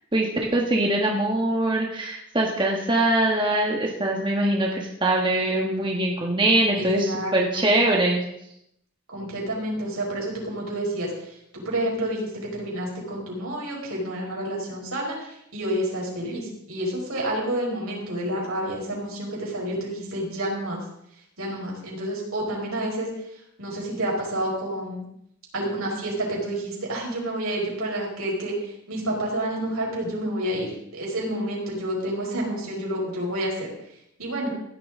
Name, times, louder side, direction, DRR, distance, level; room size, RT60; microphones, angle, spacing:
voice 1, 0.1-8.2, right 1 dB, 20° right, -1 dB, 1.5 m, -23 dB
voice 2, 6.8-7.7 9.1-11.1 11.5-20.8 21.4-23.1 23.6-25.0 25.5-28.5 28.9-33.7 34.2-34.5, right 1 dB, 80° right, -3 dB, 5.4 m, -29 dB
16.0 x 12.0 x 3.8 m, 0.76 s
head